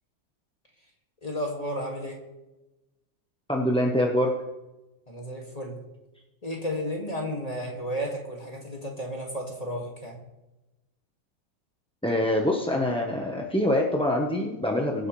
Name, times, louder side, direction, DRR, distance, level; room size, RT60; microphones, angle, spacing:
voice 1, 1.2-2.2 5.1-5.8 6.4-10.2, equal, 20° left, -1 dB, 2.2 m, -33 dB
voice 2, 3.5-4.3 12.0-15.1, left 1 dB, 5° left, -1 dB, 0.7 m, -25 dB
23.5 x 9.7 x 3.3 m, 1.0 s
omnidirectional pair, 1.9 m